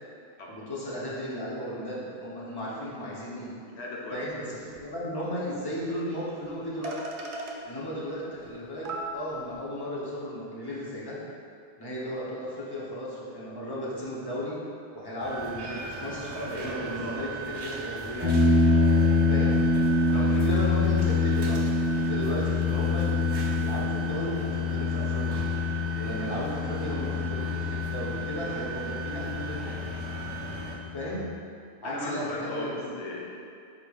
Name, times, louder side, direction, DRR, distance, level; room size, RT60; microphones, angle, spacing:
voice 1, 0.5-3.5 4.1-7.0 7.6-11.2 11.8-14.6 14.9-18.4 19.3-19.6 20.1-25.4 25.9-29.7 30.9-31.3 31.8-32.9, equal, 25° left, -7 dB, 0.8 m, -35 dB
voice 2, 3.7-4.3 20.1-20.4 31.8-33.4, left 2 dB, 85° left, -3 dB, 1.0 m, -37 dB
sound 1, 4.8-4.9 5.2-5.3 6.4-6.5 6.8-7.6 8.5-8.6 8.9-9.6, right 2 dB, 85° right, 0.9 m, -36 dB
sound 2, 15.2-30.8, right 4 dB, 30° right, 0.5 m, -38 dB
sound 3, 18.2-31.3, left 3 dB, 5° right, 1.2 m, -26 dB
4.8 x 4.3 x 2.3 m, 2.4 s
omnidirectional pair, 1.1 m